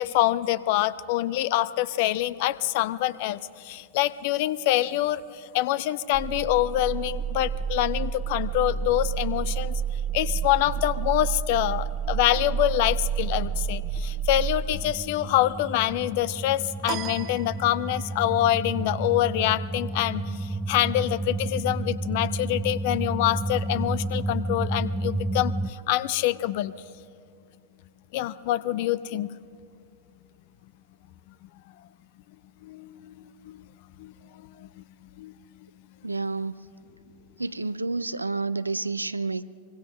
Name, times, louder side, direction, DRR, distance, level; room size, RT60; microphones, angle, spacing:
voice 1, 0.0-9.7 10.1-26.7 28.1-29.3 32.6-33.6 34.0-34.1 34.4-34.8 35.2-35.3, left 14 dB, 50° left, 17 dB, 0.7 m, -26 dB
sound 1, 6.1-25.7, right 4 dB, 10° right, 0.7 m, -30 dB
sound 2, 16.9-18.2, right 10 dB, 35° right, 0.9 m, -36 dB
voice 2, 36.0-36.6 37.4-39.4, right 3 dB, 80° right, 15 dB, 0.6 m, -29 dB
24.5 x 22.5 x 6.2 m, 2.4 s
figure-of-eight pair, 90°, 0 cm